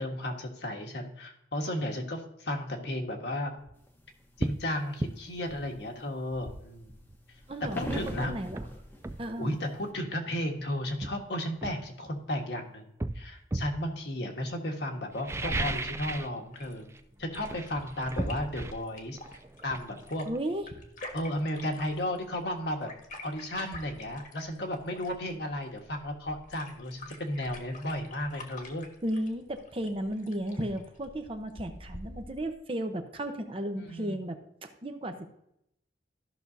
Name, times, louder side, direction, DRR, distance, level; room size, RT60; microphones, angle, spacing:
voice 1, 0.0-3.5 4.4-7.0 7.7-8.3 9.4-12.9 13.1-16.9 17.2-19.2 19.6-20.3 21.1-22.9 23.2-28.9 33.7-34.2, left 1 dB, 60° left, 2 dB, 1.4 m, -34 dB
sound 1, 3.6-3.8 4.4-4.6 5.0-5.2 7.1-7.2 7.6-9.3 10.3-10.5 11.0-12.4 13.0-13.8 15.1-16.4 16.6-17.0 17.3-20.9 21.2-21.3, right 2 dB, 15° right, 0.3 m, -35 dB
sound 2, 3.9-4.6 5.1-9.9, equal, 10° left, 1.0 m, -41 dB
voice 2, 7.5-8.6 9.2-9.5 20.3-20.6 29.0-35.3, right 1 dB, 30° right, 6 dB, 0.8 m, -34 dB
sound 3, 16.5-32.5, left 2 dB, 45° left, 1.4 m, -48 dB
14.0 x 6.1 x 2.7 m, 0.78 s
head